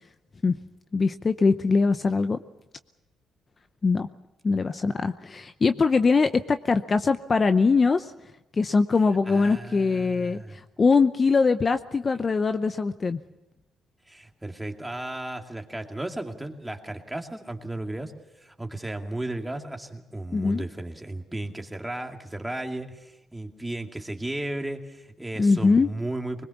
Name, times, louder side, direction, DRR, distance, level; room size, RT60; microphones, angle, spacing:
voice 1, 0.9-2.4 3.8-4.1 4.4-8.1 8.5-13.2 20.3-20.6 25.4-25.9, left 4 dB, 35° left, 10 dB, 0.7 m, -22 dB
voice 2, 9.2-10.6 14.1-18.1 18.4-26.5, right 1 dB, 10° right, 3 dB, 2.4 m, -34 dB
22.0 x 20.5 x 7.1 m, 1.0 s
cardioid pair, 90°, 0 cm